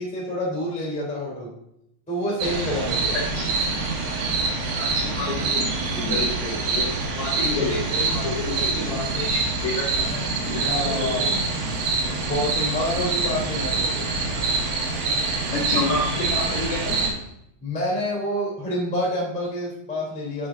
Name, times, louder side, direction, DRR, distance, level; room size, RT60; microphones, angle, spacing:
voice 1, 0.0-1.5 2.1-3.1 10.6-11.3 12.1-14.1 17.6-20.5, left 1 dB, 10° left, -4 dB, 0.3 m, -27 dB
sound 1, 2.4-17.1, right 3 dB, 85° right, 3.9 m, -25 dB
voice 2, 4.8-11.4 15.5-17.0, left 2 dB, 80° left, -2 dB, 1.6 m, -29 dB
7.4 x 6.7 x 3.6 m, 0.79 s
omnidirectional pair, 5.6 m